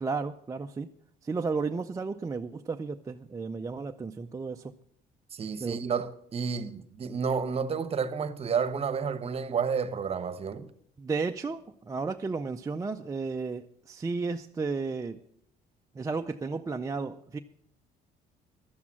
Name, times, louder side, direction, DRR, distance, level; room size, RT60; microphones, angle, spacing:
voice 1, 0.0-0.9 1.2-4.7 5.6-5.8 11.0-15.2 16.0-17.4, right 4 dB, 20° right, 0.5 m, -33 dB
voice 2, 5.3-10.7, right 6 dB, 35° right, 1.0 m, -30 dB
12.0 x 8.3 x 7.4 m
cardioid pair, 110°, 17 cm